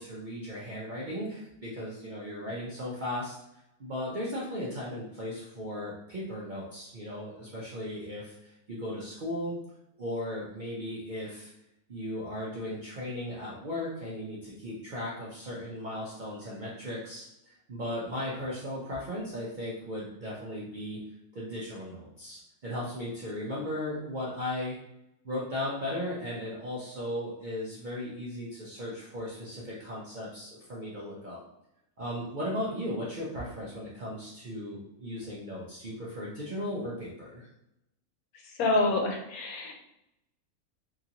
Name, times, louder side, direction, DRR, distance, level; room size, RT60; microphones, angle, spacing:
voice 1, 0.0-3.4 3.8-9.5 10.0-11.5 11.9-21.0 21.3-24.8 25.2-31.4 32.0-37.5, left 1 dB, 60° right, -6 dB, 0.5 m, -36 dB
voice 2, 38.3-39.7, left 2 dB, 80° left, 2 dB, 1.1 m, -27 dB
2.9 x 2.5 x 2.8 m, 0.84 s
omnidirectional pair, 1.5 m